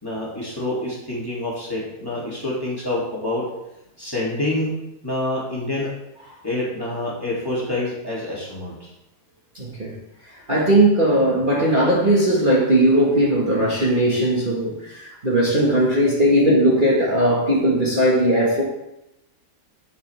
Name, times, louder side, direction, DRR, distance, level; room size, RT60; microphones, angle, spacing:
voice 1, 0.0-3.4 4.0-4.7 5.0-5.9 6.4-8.9, left 1 dB, 15° left, -6 dB, 2.6 m, -27 dB
voice 2, 9.5-10.0 10.2-18.6, right 1 dB, 30° right, -5 dB, 1.8 m, -18 dB
11.0 x 7.3 x 3.4 m, 0.88 s
omnidirectional pair, 1.7 m